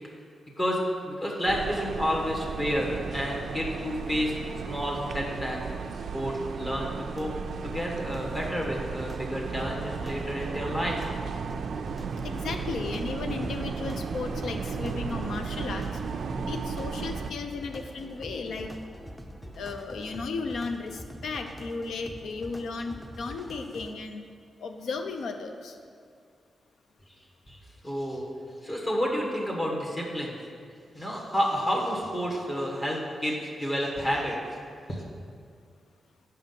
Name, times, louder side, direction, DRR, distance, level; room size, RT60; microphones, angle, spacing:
voice 1, 0.6-4.3 4.7-7.3 7.6-11.0 27.5-27.6 27.8-28.3 28.6-30.4 30.9-34.4 34.9-35.0, equal, 25° left, -3 dB, 1.3 m, -30 dB
sound 1, 1.5-17.3, right 5 dB, 65° right, 0.3 m, -35 dB
sound 2, 7.1-23.9, equal, 5° left, 0.5 m, -44 dB
voice 2, 12.2-15.9 16.2-18.7 19.5-24.2 24.6-25.8, left 4 dB, 85° left, 6 dB, 0.6 m, -35 dB
7.4 x 5.7 x 5.4 m, 2.2 s
wide cardioid pair, 120°, 0 cm